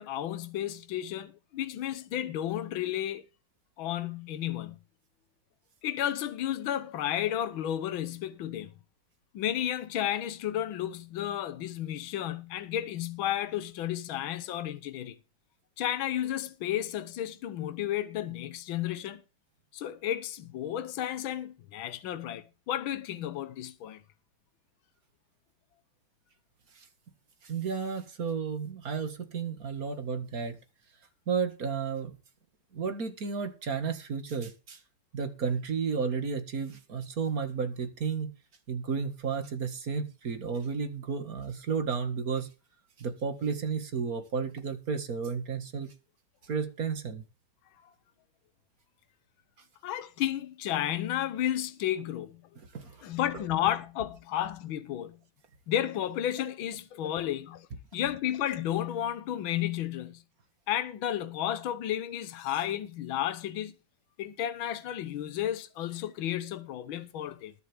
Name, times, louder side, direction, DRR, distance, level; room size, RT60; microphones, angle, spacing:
voice 1, 0.0-3.2 3.8-4.8 5.8-8.7 9.3-15.2 15.8-19.2 19.7-24.0 49.8-52.4 53.0-55.2 55.7-57.7 57.9-60.2 60.7-63.7 64.2-67.5, left 11 dB, 80° left, 1.8 m, -32 dB
voice 2, 27.4-30.6 31.3-32.1 32.7-34.8 35.1-38.3 38.7-42.5 43.0-45.9 46.4-47.2 52.7-53.1, right 5 dB, 45° right, 2.2 m, -32 dB
20.5 x 7.9 x 3.5 m
omnidirectional pair, 2.2 m